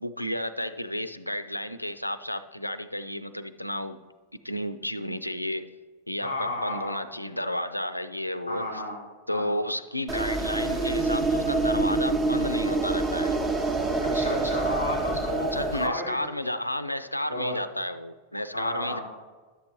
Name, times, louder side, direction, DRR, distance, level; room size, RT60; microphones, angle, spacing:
voice 1, 0.0-4.0 4.4-5.7 6.1-8.8 9.3-13.4 15.3-19.0, left 1 dB, 85° left, 12 dB, 0.3 m, -32 dB
voice 2, 6.2-7.0 8.5-9.0 9.3-9.4 14.1-16.0 17.3-17.6 18.5-19.0, left 1 dB, 90° right, -3 dB, 2.7 m, -32 dB
sound 1, 10.1-15.9, right 2 dB, 20° right, 0.8 m, -26 dB
11.0 x 7.6 x 2.9 m, 1.3 s
figure-of-eight pair, 90°, 0 cm